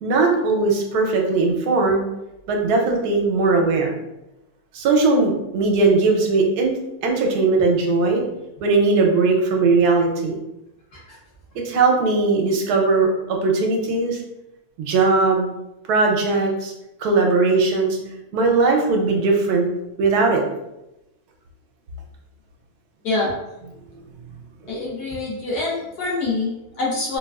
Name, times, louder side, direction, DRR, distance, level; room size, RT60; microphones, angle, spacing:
voice 1, 0.0-2.0 2.5-3.9 4.7-8.2 8.6-10.3 11.6-14.2 14.8-15.4 15.9-16.7 17.0-18.0 18.3-19.7 20.0-20.4 24.6-24.7, right 3 dB, 85° right, 1 dB, 1.2 m, -19 dB
voice 2, 24.7-27.2, left 3 dB, 75° left, -5 dB, 1.6 m, -25 dB
3.8 x 2.3 x 2.3 m, 0.92 s
omnidirectional pair, 1.7 m